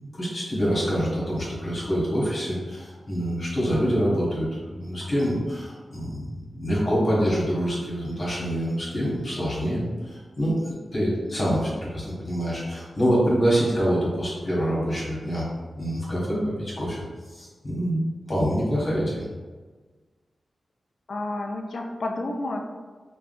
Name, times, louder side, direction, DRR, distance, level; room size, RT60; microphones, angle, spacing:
voice 1, 0.0-15.5 15.8-18.0 18.3-19.2, equal, 45° left, -6 dB, 1.2 m, -26 dB
voice 2, 21.1-22.6, left 2 dB, 65° left, 2 dB, 0.4 m, -30 dB
3.4 x 2.2 x 2.5 m, 1.4 s
wide cardioid pair, 90°, 0 cm